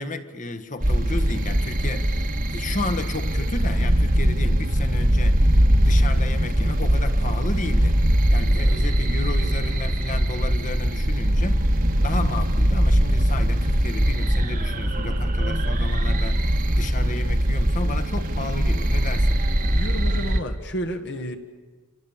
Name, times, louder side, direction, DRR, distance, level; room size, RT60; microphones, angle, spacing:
voice 1, 0.0-8.0 8.3-11.7 12.0-19.4, left 2 dB, 35° left, 1.4 m, -33 dB
sound 1, 0.8-20.4, equal, 40° right, 1.5 m, -21 dB
voice 2, 19.7-21.4, equal, 50° left, 1.7 m, -31 dB
28.0 x 26.5 x 7.2 m
head